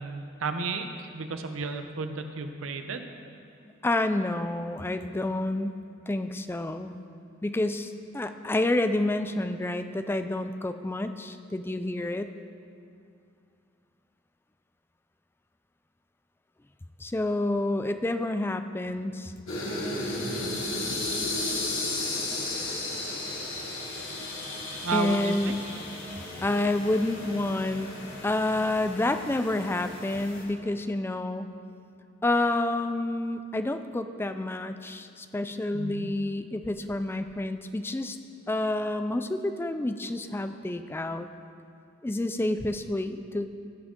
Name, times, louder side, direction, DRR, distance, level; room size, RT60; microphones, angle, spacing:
voice 1, 0.0-3.1 24.8-25.6 35.7-36.1, right 4 dB, 90° right, 7 dB, 0.7 m, -33 dB
voice 2, 3.8-5.8 6.1-7.0 7.4-12.3 17.0-19.3 24.9-25.5 26.4-27.9 28.2-31.5 32.2-38.2 38.5-41.3 42.0-43.5, left 2 dB, 10° left, 9 dB, 0.3 m, -29 dB
sound 1, 19.5-30.4, left 2 dB, 85° left, 2.7 m, -34 dB
16.0 x 6.2 x 3.7 m, 2.5 s
head